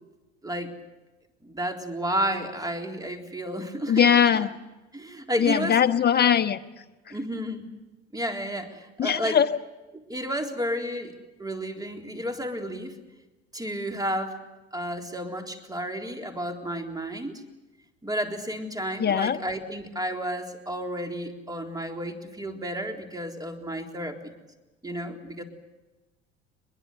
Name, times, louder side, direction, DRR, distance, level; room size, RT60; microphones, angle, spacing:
voice 1, 1.4-4.1 4.3-4.5 4.9-5.8 7.1-7.6 8.1-9.4 9.9-13.0 13.5-14.4 14.7-17.4 18.0-24.4 24.8-25.4, equal, 10° right, 4 dB, 3.8 m, -32 dB
voice 2, 3.9-4.5 5.4-6.6 9.0-9.5 19.0-19.4, left 8 dB, 30° left, 10 dB, 1.3 m, -20 dB
23.0 x 21.5 x 8.1 m, 1.1 s
figure-of-eight pair, 65°, 34 cm